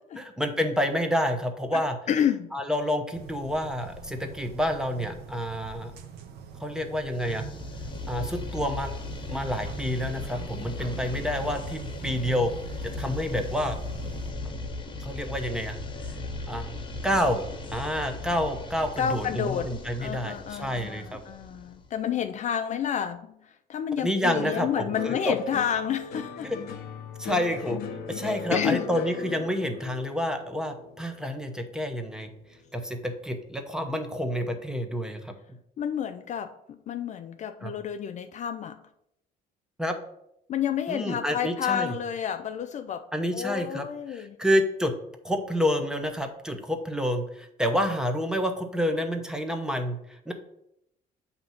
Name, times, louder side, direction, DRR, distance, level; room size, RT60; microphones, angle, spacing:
voice 1, 0.1-2.0 2.5-5.9 6.6-7.5 8.1-8.9 9.3-12.5 12.8-13.8 15.0-15.8 16.5-16.7 17.0-17.4 17.7-21.2 24.0-25.4 26.4-26.6 27.2-27.8 28.1-32.3 32.7-35.3 37.6-37.7 39.8-40.0 40.9-41.9 43.1-44.9 45.2-50.3, equal, 5° right, 5 dB, 0.8 m, -28 dB
voice 2, 2.1-2.5 19.0-19.7 20.0-26.5 28.5-28.9 35.8-38.8 40.5-43.0 43.3-44.4, left 8 dB, 45° left, 7 dB, 0.4 m, -30 dB
sound 1, 3.1-14.3, right 6 dB, 70° right, 0.8 m, -43 dB
sound 2, 7.2-22.0, left 2 dB, 30° left, 0.8 m, -37 dB
sound 3, 24.4-32.8 33.1-33.8, left 5 dB, 70° left, 1.0 m, -38 dB
7.7 x 2.9 x 5.5 m, 0.78 s
cardioid pair, 110°, 17 cm